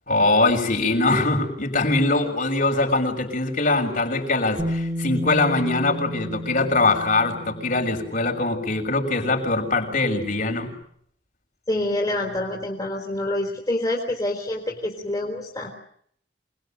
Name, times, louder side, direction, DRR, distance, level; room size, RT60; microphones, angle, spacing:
voice 1, 0.1-10.7, left 2 dB, 50° left, 3 dB, 6.5 m, -22 dB
Bass guitar, 4.6-10.6, equal, 20° right, 2.5 m, -33 dB
voice 2, 11.7-15.7, left 1 dB, 20° left, 0 dB, 3.8 m, -27 dB
27.5 x 21.0 x 9.1 m, 0.68 s
head